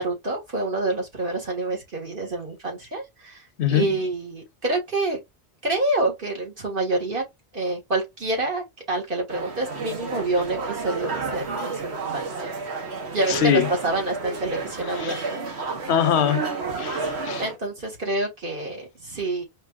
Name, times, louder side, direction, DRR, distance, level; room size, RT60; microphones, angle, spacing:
voice 1, 0.0-5.2 5.6-7.2 7.5-12.2 12.7-12.8 13.1-15.6 17.4-19.4, right 2 dB, 55° right, 1.8 m, -27 dB
voice 2, 3.6-3.9 13.3-13.7 14.9-15.2 15.9-16.4 16.8-17.4, left 9 dB, 85° left, 0.9 m, -22 dB
sound 1, 9.3-17.6, right 4 dB, 80° right, 1.2 m, -31 dB
5.0 x 2.7 x 2.3 m
omnidirectional pair, 1.1 m